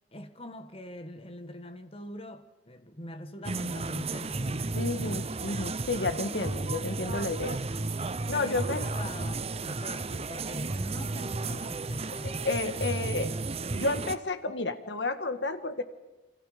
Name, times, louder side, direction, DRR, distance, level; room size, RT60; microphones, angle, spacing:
voice 1, 0.1-4.8 8.3-12.4, left 1 dB, 35° left, 1.7 m, -43 dB
sound 1, 3.4-14.2, right 3 dB, 35° right, 0.8 m, -33 dB
voice 2, 4.7-7.6 8.3-8.8 12.2-13.3 13.7-15.8, left 3 dB, 70° left, 1.8 m, -31 dB
29.5 x 24.0 x 5.1 m
head